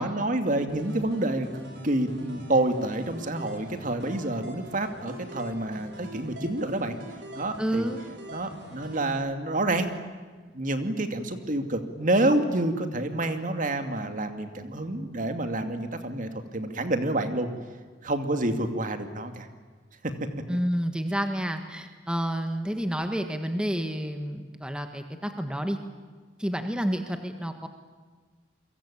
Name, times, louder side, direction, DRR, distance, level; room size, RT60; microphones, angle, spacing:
voice 1, 0.0-7.0 7.3-7.9 8.3-9.9 10.5-17.5 18.0-19.5, right 1 dB, 45° right, 7 dB, 2.4 m, -28 dB
sound 1, 0.7-9.1, equal, 85° right, 6.3 m, -44 dB
voice 2, 7.6-8.0 20.5-25.8 26.4-27.7, equal, 5° right, 6 dB, 1.6 m, -29 dB
29.5 x 23.0 x 8.7 m, 1.4 s
head